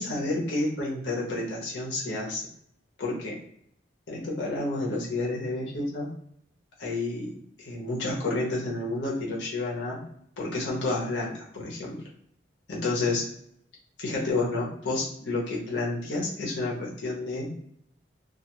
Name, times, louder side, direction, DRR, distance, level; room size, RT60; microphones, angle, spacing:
voice 1, 0.0-2.4 3.0-3.4 4.1-6.1 6.8-7.3 7.6-10.0 10.4-12.0 12.7-13.2 14.0-17.5, left 2 dB, 85° left, -4 dB, 0.9 m, -30 dB
2.4 x 2.4 x 2.9 m, 0.70 s
head